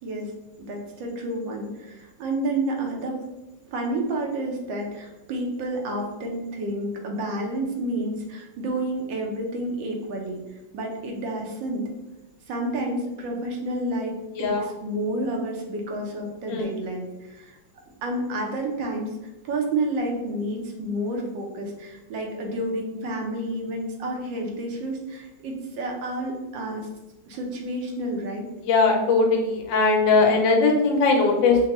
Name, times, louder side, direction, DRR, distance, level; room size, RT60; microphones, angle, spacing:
voice 1, 0.0-0.3 0.6-3.2 3.7-10.4 10.7-11.9 12.5-17.6 18.0-19.2 19.4-26.9 27.3-28.4, right 1 dB, 75° right, 1 dB, 1.4 m, -30 dB
voice 2, 28.6-31.6, left 4 dB, 80° left, 2 dB, 1.3 m, -20 dB
5.4 x 2.2 x 2.9 m, 1.0 s
omnidirectional pair, 2.1 m